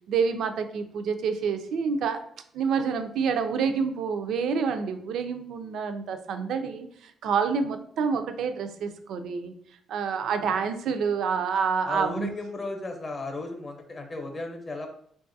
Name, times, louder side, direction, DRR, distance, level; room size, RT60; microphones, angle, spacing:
voice 1, 0.1-2.2 2.5-9.6 9.9-12.3, right 6 dB, 75° right, 8 dB, 0.3 m, -28 dB
voice 2, 11.9-14.9, left 2 dB, 35° left, 4 dB, 0.7 m, -35 dB
3.7 x 2.3 x 2.6 m, 0.64 s
cardioid pair, 90°, 0 cm